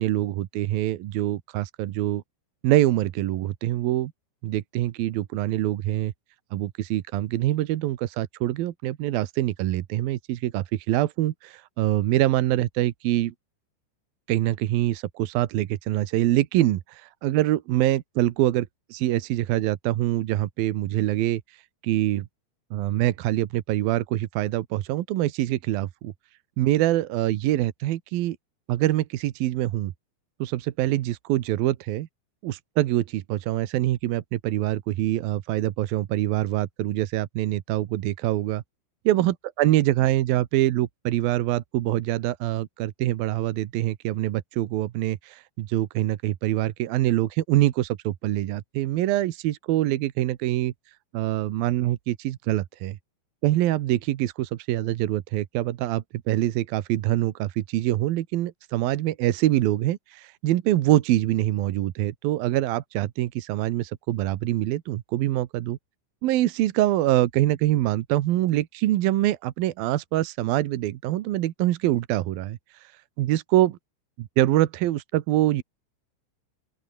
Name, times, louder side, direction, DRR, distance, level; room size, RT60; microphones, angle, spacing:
voice 1, 0.0-2.2 2.6-4.1 4.4-6.1 6.5-13.3 14.3-21.4 21.8-22.2 22.7-26.1 26.6-28.4 28.7-29.9 30.4-32.1 32.4-38.6 39.1-50.7 51.1-53.0 53.4-65.8 66.2-72.6 73.2-73.8 74.2-75.6, right 14 dB, 75° right, 2.2 m, -24 dB
open air
omnidirectional pair, 5.7 m